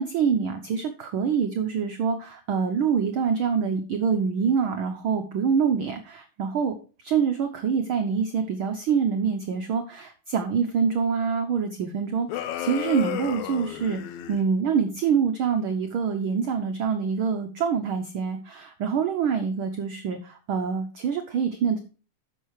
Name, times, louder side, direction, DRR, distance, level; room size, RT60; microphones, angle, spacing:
voice 1, 0.0-6.7 7.0-14.0 14.3-21.8, right 6 dB, 80° right, 6 dB, 1.1 m, -25 dB
sound 1, 12.3-14.4, left 12 dB, 80° left, 2.1 m, -32 dB
8.9 x 6.4 x 4.7 m, 0.36 s
omnidirectional pair, 3.4 m